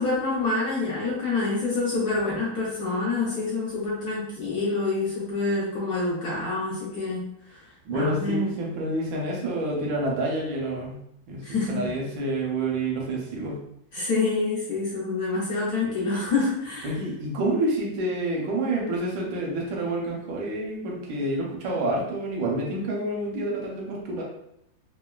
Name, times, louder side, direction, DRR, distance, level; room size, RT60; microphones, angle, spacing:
voice 1, 0.0-7.6 7.9-8.5 11.4-11.9 13.9-17.0, left 3 dB, 65° left, -7 dB, 1.0 m, -27 dB
voice 2, 7.8-11.0 11.3-13.6 16.8-24.2, right 1 dB, 90° right, -2 dB, 1.5 m, -28 dB
3.6 x 2.1 x 2.3 m, 0.77 s
omnidirectional pair, 2.0 m